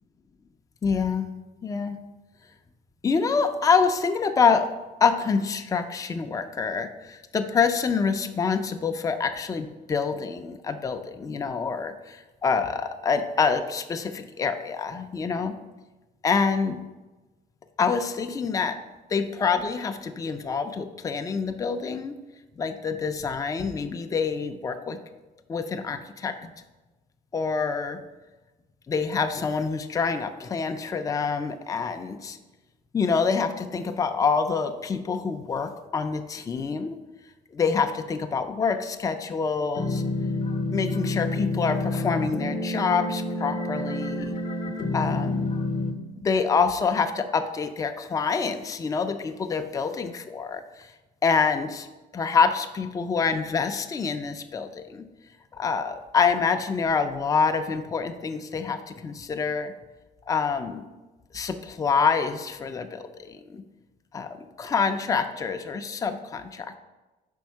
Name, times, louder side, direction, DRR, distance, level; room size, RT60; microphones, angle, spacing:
voice 1, 0.8-1.3 1.6-2.0 3.0-4.7 5.0-15.5 16.2-16.8 17.8-18.8 19.1-22.2 22.6-25.0 25.5-26.5 27.3-28.0 28.9-32.4 32.9-37.0 37.5-40.0 40.7-44.4 44.9-45.5 46.2-50.9 51.2-51.9 52.1-55.0 55.5-59.7 60.3-60.8 61.3-63.6 64.1-64.3 64.6-66.8, left 5 dB, 20° left, 7 dB, 0.4 m, -26 dB
sound 1, 39.8-45.9, left 2 dB, 50° left, 0.8 m, -28 dB
5.3 x 4.1 x 4.6 m, 1.1 s
cardioid pair, 110°, 17 cm